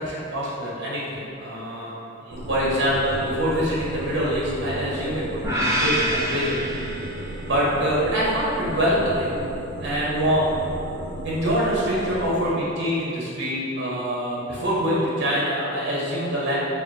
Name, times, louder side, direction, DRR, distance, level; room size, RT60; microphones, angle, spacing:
voice 1, 0.0-1.9 2.2-6.6 7.4-9.4 9.8-10.5 11.2-16.6, equal, 60° right, -6 dB, 0.8 m, -25 dB
sound 1, 2.3-12.5, right 1 dB, 85° right, 0.5 m, -35 dB
sound 2, 5.4-7.6, equal, 15° right, 0.4 m, -26 dB
3.5 x 2.3 x 4.1 m, 2.6 s
head